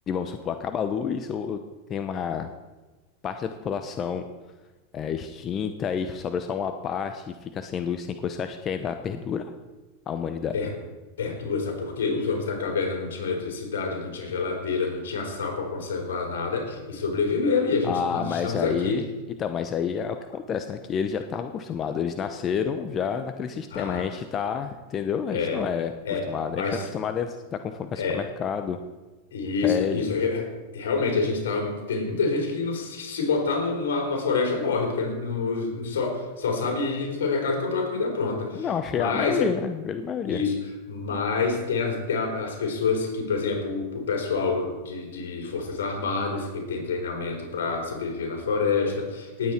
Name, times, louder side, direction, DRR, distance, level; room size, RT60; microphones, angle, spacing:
voice 1, 0.1-1.6 1.9-2.5 3.2-4.2 4.9-9.4 10.1-10.5 17.8-19.0 19.4-26.6 26.9-28.8 29.6-30.0 38.5-40.4, left 7 dB, 35° left, 8 dB, 0.9 m, -29 dB
voice 2, 11.2-19.0 23.7-24.0 25.3-25.6 26.1-26.3 26.5-26.9 28.0-28.2 29.3-39.5 40.3-40.6 40.9-49.5, left 4 dB, 80° left, 2 dB, 3.9 m, -27 dB
19.0 x 8.4 x 4.5 m, 1.2 s
hypercardioid pair, 105°, 0 cm